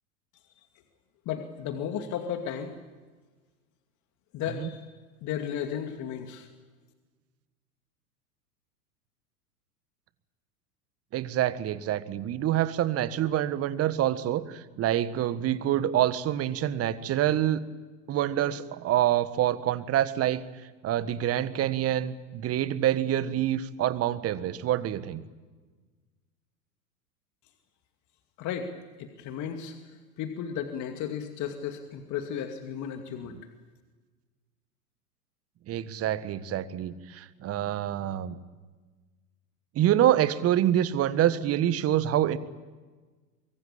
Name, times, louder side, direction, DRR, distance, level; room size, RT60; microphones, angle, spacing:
voice 1, 1.3-2.7 4.3-4.8 5.2-6.5 28.4-28.7 29.0-33.4, left 8 dB, 40° left, 5 dB, 2.5 m, -34 dB
voice 2, 11.1-17.6 18.1-20.4 20.8-25.2 35.7-38.4 39.7-42.4, right 12 dB, 30° right, 14 dB, 1.5 m, -26 dB
24.0 x 23.5 x 8.8 m, 1.3 s
figure-of-eight pair, 90°, 47 cm